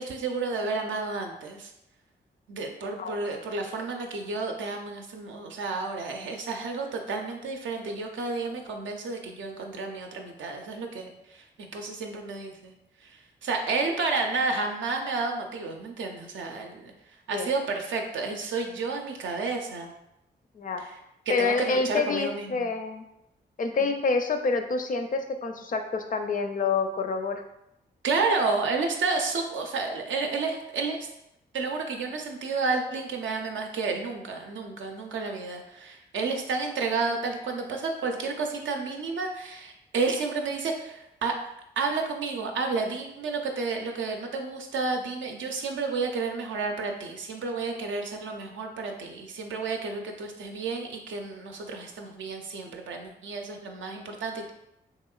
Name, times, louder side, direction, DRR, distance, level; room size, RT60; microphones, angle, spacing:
voice 1, 0.0-1.7 2.5-12.7 13.0-16.9 17.3-19.9 20.8-21.0 21.3-22.7 28.0-31.1 31.5-41.4 41.8-54.5, right 4 dB, 70° right, 3 dB, 0.5 m, -31 dB
voice 2, 2.9-3.2 17.3-17.5 20.6-20.9 21.3-23.1 23.6-27.4, left 4 dB, 45° left, 6 dB, 0.4 m, -27 dB
3.0 x 2.8 x 2.3 m, 0.84 s
supercardioid pair, 40°, 20 cm